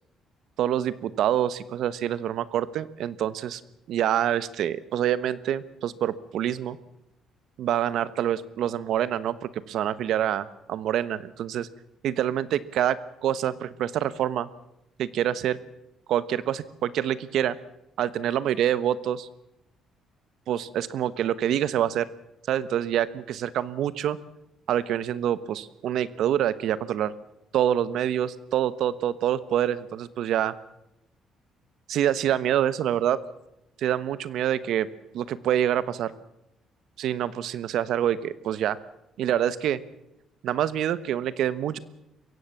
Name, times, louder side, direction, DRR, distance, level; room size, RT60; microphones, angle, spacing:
voice 1, 0.6-3.6 3.9-6.8 7.6-9.4 9.7-11.7 12.0-14.5 15.0-15.6 16.1-17.6 18.0-19.3 20.5-22.1 22.5-24.2 24.7-27.1 27.5-30.5 31.9-33.2 33.8-34.9 35.1-36.1 37.0-38.8 39.2-39.8 40.4-41.8, right 10 dB, 70° right, 16 dB, 1.1 m, -26 dB
23.0 x 16.5 x 7.2 m, 0.86 s
cardioid pair, 100°, 0 cm